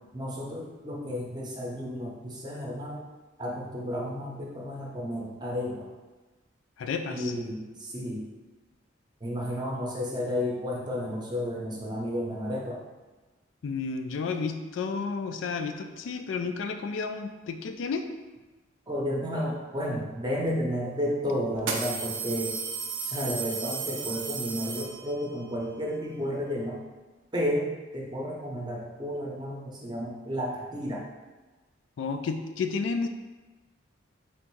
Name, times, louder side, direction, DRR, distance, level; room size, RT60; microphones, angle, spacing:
voice 1, 0.1-3.0 3.4-5.9 7.1-8.2 9.2-12.8 18.9-22.5 23.0-26.8 27.3-31.1, equal, 20° right, -2 dB, 0.7 m, -32 dB
voice 2, 6.8-7.3 13.6-18.1 32.0-33.1, left 4 dB, 75° left, 7 dB, 0.3 m, -31 dB
sound 1, 20.5-20.6 21.6-25.4, right 5 dB, 85° right, 0.6 m, -34 dB
3.6 x 2.6 x 4.5 m, 1.2 s
head